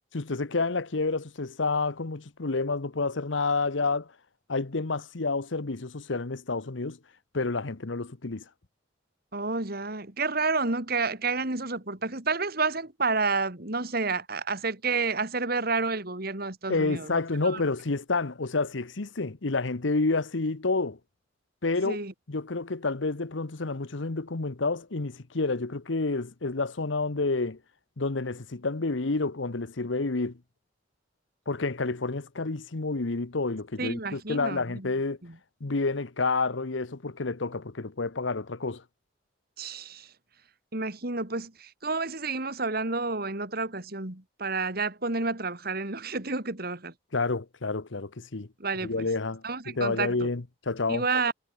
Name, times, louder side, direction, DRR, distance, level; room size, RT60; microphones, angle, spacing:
voice 1, 0.1-4.1 4.5-7.0 7.3-8.4 16.7-21.0 21.6-22.0 22.3-27.6 28.0-30.4 31.5-35.2 35.6-38.8 47.1-48.5 48.8-51.1, left 3 dB, 80° left, 1.1 m, -29 dB
voice 2, 9.3-17.2 17.4-17.6 21.8-22.1 33.8-34.9 35.2-35.3 39.6-40.1 40.7-46.9 48.6-49.1 49.4-50.2 50.9-51.3, right 4 dB, 55° right, 2.8 m, -30 dB
head